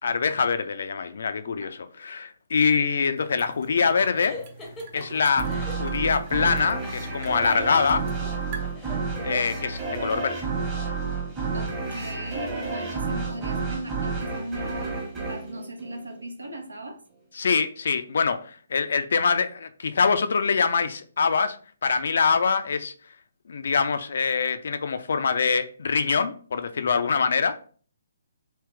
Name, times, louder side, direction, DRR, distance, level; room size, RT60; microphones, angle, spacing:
voice 1, 0.0-4.4 4.9-8.1 9.2-10.5 17.4-22.9 23.5-27.6, left 5 dB, 55° left, 0.4 m, -24 dB
sound 1, 3.1-8.7, right 5 dB, 35° right, 0.6 m, -44 dB
sound 2, 4.1-5.9 6.6-10.2, left 2 dB, 10° left, 0.7 m, -42 dB
sound 3, 5.4-16.5, right 4 dB, 20° right, 1.1 m, -31 dB
voice 2, 11.5-15.0 15.2-17.0, right 1 dB, 75° right, 0.9 m, -37 dB
3.3 x 3.0 x 3.2 m
figure-of-eight pair, 135°, 0 cm